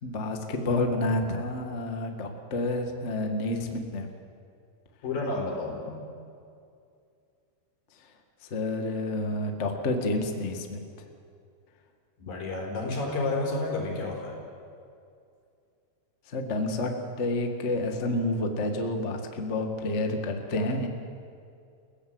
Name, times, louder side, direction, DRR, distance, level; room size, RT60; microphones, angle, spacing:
voice 1, 0.0-4.1 8.5-10.8 16.3-16.9 17.2-20.9, left 2 dB, 80° left, 4 dB, 0.6 m, -29 dB
voice 2, 5.0-6.0 12.2-14.4, left 2 dB, 60° left, 0 dB, 5.7 m, -31 dB
29.0 x 16.5 x 7.9 m, 2.4 s
omnidirectional pair, 4.6 m